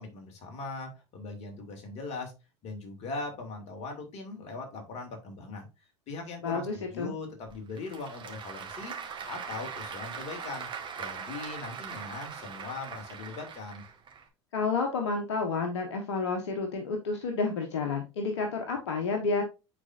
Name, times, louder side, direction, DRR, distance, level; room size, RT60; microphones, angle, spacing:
voice 1, 0.0-2.3 2.6-5.7 6.1-8.9 9.3-10.7 11.0-13.8, left 3 dB, 50° left, 4 dB, 2.6 m, -40 dB
voice 2, 6.4-7.1 14.5-19.4, left 4 dB, 75° left, 4 dB, 1.2 m, -30 dB
Applause / Crowd, 7.5-14.2, right 6 dB, 35° right, 2.0 m, -41 dB
9.7 x 4.4 x 2.6 m, 0.27 s
hypercardioid pair, 80°, 15 cm